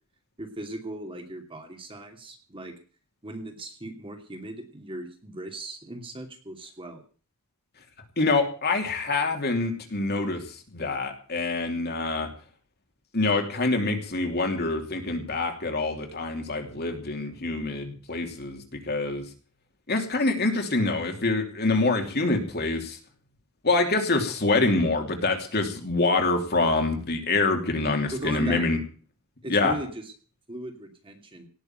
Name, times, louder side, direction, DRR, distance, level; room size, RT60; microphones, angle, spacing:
voice 1, 0.4-2.7 3.2-7.0 28.1-28.6 29.4-30.0 30.5-31.5, right 1 dB, 25° right, 4 dB, 2.8 m, -38 dB
voice 2, 8.2-12.3 13.1-19.2 19.9-23.0 23.6-28.8 29.5-29.8, left 3 dB, 45° left, 4 dB, 3.0 m, -26 dB
18.0 x 7.0 x 9.0 m, 0.40 s
head